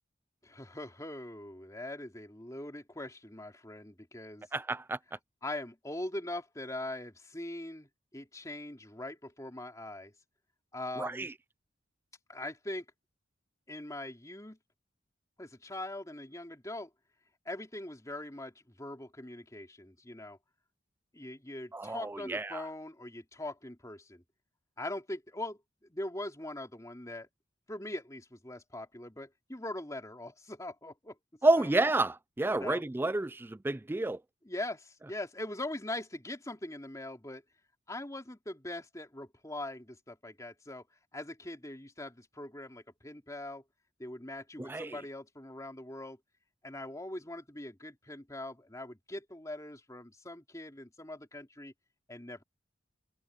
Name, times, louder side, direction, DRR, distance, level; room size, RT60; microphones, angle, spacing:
voice 1, 0.4-4.5 5.4-10.1 10.7-11.3 12.3-12.8 13.7-14.6 15.4-16.9 17.4-20.4 21.1-24.2 24.8-25.6 25.9-27.3 27.7-31.2 31.6-31.7 32.5-32.8 34.4-37.4 37.9-40.8 41.1-43.6 44.0-46.2 46.6-51.7 52.1-52.4, left 1 dB, 20° left, 3.2 m, -42 dB
voice 2, 4.5-5.0 11.0-11.3 21.7-22.6 31.4-34.2 44.6-45.0, right 2 dB, 10° right, 0.3 m, -30 dB
head